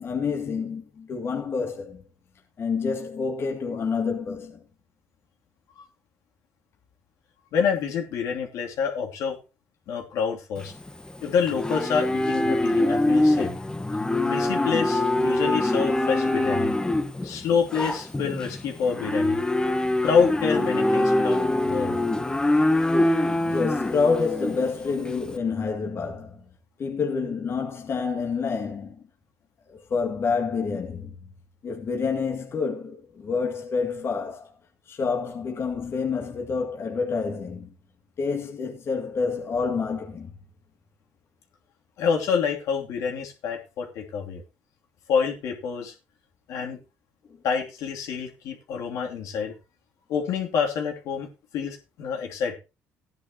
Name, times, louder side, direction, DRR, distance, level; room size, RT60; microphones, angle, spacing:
voice 1, 0.0-2.0 2.6-4.6 23.5-26.4 26.8-29.0 29.7-31.1 31.6-34.5 34.9-37.7 38.2-40.3, left 5 dB, 45° left, 2.1 m, -28 dB
voice 2, 7.5-9.4 9.9-10.7 11.2-13.5 14.2-16.7 17.2-19.4 20.0-22.0 42.0-44.4 45.1-45.9 46.5-46.8 47.4-49.5 50.1-51.3 51.5-52.6, left 6 dB, 75° left, 2.8 m, -27 dB
Livestock farm animals working animals, 10.6-25.3, left 1 dB, 15° left, 1.2 m, -24 dB
15.5 x 10.5 x 2.9 m
supercardioid pair, 85°, 6 cm